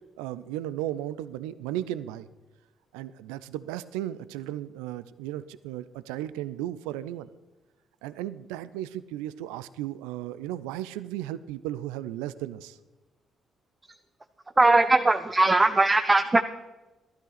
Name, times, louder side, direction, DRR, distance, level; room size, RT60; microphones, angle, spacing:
voice 1, 0.2-2.3 2.9-7.3 8.0-12.8, right 13 dB, 75° right, 16 dB, 0.4 m, -35 dB
voice 2, 14.6-16.4, right 2 dB, 25° right, 8 dB, 0.7 m, -20 dB
14.0 x 12.5 x 4.1 m, 1.1 s
hypercardioid pair, 40°, 0 cm